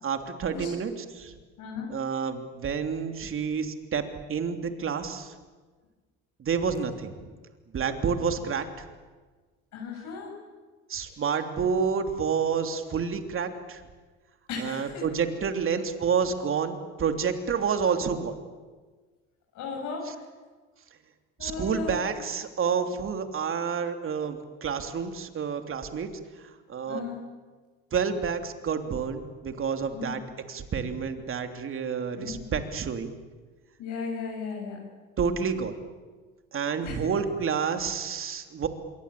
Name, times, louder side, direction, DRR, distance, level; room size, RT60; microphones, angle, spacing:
voice 1, 0.0-1.4 1.9-5.3 6.4-7.3 7.7-8.8 10.9-13.8 14.6-18.3 21.4-27.0 27.9-30.2 30.5-33.1 35.2-35.7 36.5-38.7, right 6 dB, 40° right, 6 dB, 3.2 m, -29 dB
voice 2, 1.6-1.9 9.7-10.3 11.0-11.2 14.5-15.1 19.5-20.2 21.4-22.0 26.8-27.1 29.9-30.2 32.1-32.3 33.8-34.9 36.8-37.0, left 5 dB, 65° left, -2 dB, 7.9 m, -36 dB
26.5 x 23.0 x 8.6 m, 1.4 s
supercardioid pair, 90°, 32 cm